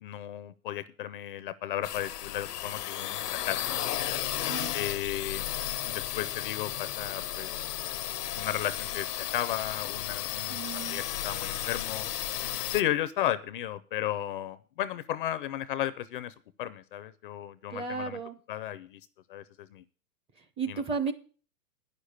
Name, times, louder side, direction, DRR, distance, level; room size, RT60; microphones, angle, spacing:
voice 1, 0.0-3.8 4.7-5.5 5.9-7.7 8.4-12.1 12.7-18.2 18.5-19.0 19.3-19.8 20.7-20.8, left 12 dB, 35° left, 15 dB, 0.5 m, -34 dB
sound 1, 1.8-12.8, left 12 dB, 80° left, 0.7 m, -34 dB
voice 2, 10.5-11.0 17.7-18.4 20.6-21.1, right 5 dB, 15° right, 9 dB, 0.5 m, -33 dB
9.6 x 6.6 x 8.2 m, 0.41 s
hypercardioid pair, 130°, 46 cm